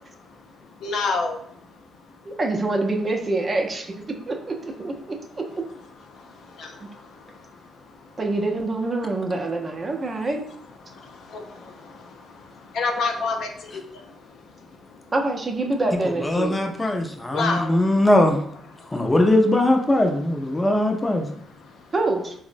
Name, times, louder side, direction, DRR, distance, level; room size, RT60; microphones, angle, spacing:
voice 1, 0.8-1.4 6.6-6.7 11.3-11.4 12.7-13.8 17.3-17.7, left 4 dB, 70° left, 3 dB, 0.4 m, -25 dB
voice 2, 2.3-3.9 4.3-5.2 8.2-10.4 15.1-16.6 21.9-22.3, right 2 dB, 35° right, 2 dB, 0.5 m, -25 dB
voice 3, 16.2-18.4 18.9-21.3, left 1 dB, 15° left, 4 dB, 0.5 m, -20 dB
3.6 x 2.0 x 2.5 m, 0.65 s
cardioid pair, 90°, 0 cm